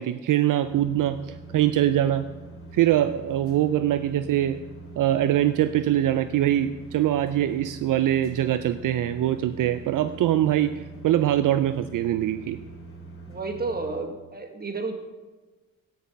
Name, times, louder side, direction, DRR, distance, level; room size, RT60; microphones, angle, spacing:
voice 1, 0.0-2.2 2.7-4.6 5.0-12.6, right 12 dB, 70° right, 12 dB, 0.5 m, -23 dB
sound 1, 0.6-14.0, right 2 dB, 40° left, 3.7 m, -43 dB
voice 2, 13.3-14.9, right 3 dB, 30° right, 6 dB, 1.7 m, -31 dB
10.5 x 9.5 x 5.4 m, 1.2 s
cardioid pair, 75°, 34 cm